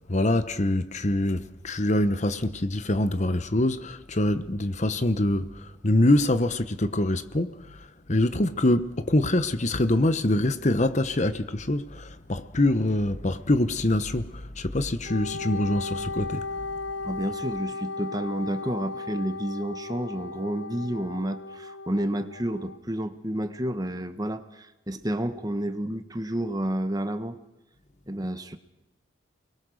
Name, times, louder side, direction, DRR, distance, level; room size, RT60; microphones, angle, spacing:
voice 1, 0.1-5.5 5.8-7.8 8.1-16.5, left 1 dB, 40° left, 1.0 m, -24 dB
Wind instrument woodwind instrument, 15.1-22.8, left 3 dB, 65° left, 0.8 m, -36 dB
voice 2, 17.0-27.4 28.1-28.6, right 1 dB, 20° right, 1.5 m, -30 dB
29.5 x 21.5 x 6.4 m
head